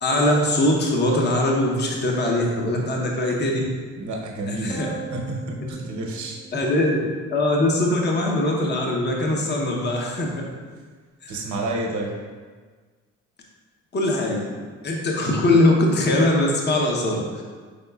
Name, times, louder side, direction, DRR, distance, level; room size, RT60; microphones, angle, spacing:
voice 1, 0.0-3.7 4.5-4.9 6.5-7.0 7.3-10.3 11.2-11.4 13.9-14.5 14.8-17.4, left 1 dB, 35° left, 0 dB, 0.7 m, -21 dB
voice 2, 4.0-6.4 11.3-12.2, right 2 dB, 70° right, 0 dB, 0.8 m, -30 dB
sound 1, 4.7-7.3, right 4 dB, 5° right, 0.5 m, -39 dB
5.2 x 4.0 x 2.3 m, 1.5 s
cardioid pair, 90°, 30 cm